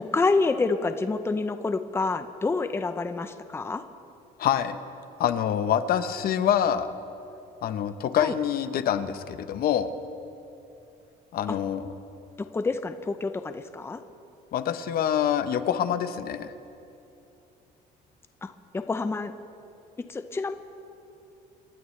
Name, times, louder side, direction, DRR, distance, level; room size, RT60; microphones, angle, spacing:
voice 1, 0.0-3.8 8.2-8.3 11.5-11.6 12.4-14.0 18.4-19.3 20.1-20.5, left 3 dB, 15° left, 9 dB, 0.6 m, -28 dB
voice 2, 4.4-4.8 5.2-6.9 7.6-9.9 11.3-11.9 14.5-16.5, left 9 dB, 60° left, 11 dB, 0.8 m, -26 dB
27.5 x 13.0 x 3.2 m, 2.8 s
cardioid pair, 110°, 17 cm